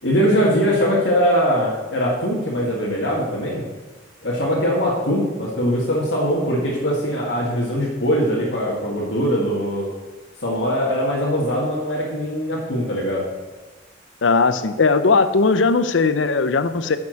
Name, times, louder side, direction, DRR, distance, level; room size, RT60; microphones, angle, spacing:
voice 1, 0.0-3.6 4.2-9.9 10.4-13.3, equal, 75° left, -5 dB, 1.8 m, -21 dB
voice 2, 14.2-17.0, left 4 dB, 90° left, 11 dB, 0.6 m, -18 dB
9.2 x 6.0 x 6.4 m, 1.2 s
head